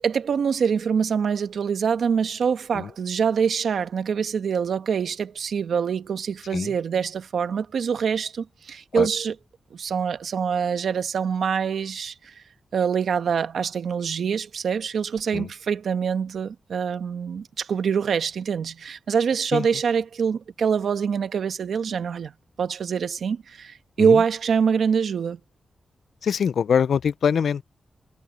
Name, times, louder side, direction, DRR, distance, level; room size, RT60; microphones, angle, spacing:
voice 1, 0.0-9.4 9.7-12.4 12.7-22.3 22.6-25.4, right 6 dB, 75° right, 1.3 m, -25 dB
voice 2, 26.2-27.6, left 7 dB, 75° left, 0.3 m, -22 dB
wide cardioid pair, 145°, 0 cm